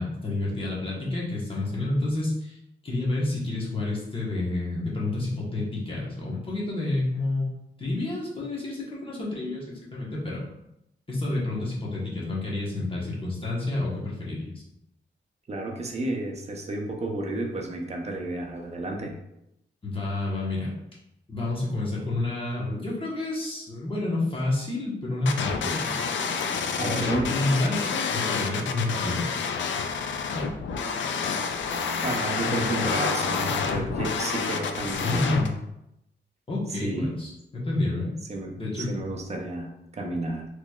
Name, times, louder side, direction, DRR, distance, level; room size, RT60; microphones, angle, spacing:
voice 1, 0.0-2.6 2.8-7.5 7.8-9.7 9.9-10.4 11.1-14.6 19.8-20.7 21.3-26.0 26.8-29.4 32.5-33.8 34.8-35.6 36.5-38.1 38.6-38.9, left 2 dB, 30° left, -5 dB, 1.1 m, -29 dB
voice 2, 15.5-19.2 26.8-27.3 32.0-35.4 36.8-37.2 38.3-40.5, right 2 dB, 35° right, 2 dB, 0.6 m, -32 dB
sound 1, 25.3-35.5, left 5 dB, 80° left, 0.4 m, -29 dB
3.8 x 3.1 x 2.3 m, 0.84 s
wide cardioid pair, 130°, 19 cm